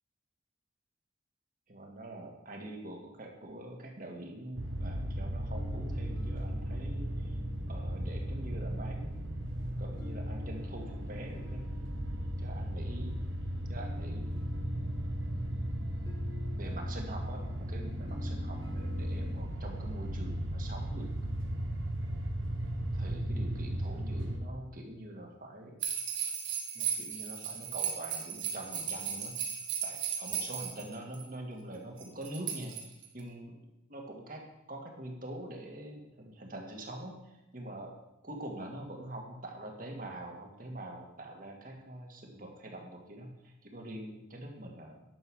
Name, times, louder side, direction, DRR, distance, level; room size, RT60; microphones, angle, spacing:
voice 1, 1.7-7.3 7.7-9.5 9.8-11.7 12.4-13.2 13.7-14.8 16.6-21.1 22.9-25.8 26.7-29.4 29.8-37.9 38.2-45.0, right 1 dB, 45° right, 1 dB, 2.0 m, -44 dB
sound 1, 4.6-24.4, right 1 dB, 90° right, 1.3 m, -36 dB
sound 2, 5.5-19.4, left 2 dB, 25° left, 1.8 m, -51 dB
sound 3, 25.8-31.2 32.0-33.2, right 8 dB, 70° right, 1.7 m, -36 dB
11.0 x 6.9 x 6.3 m, 0.90 s
head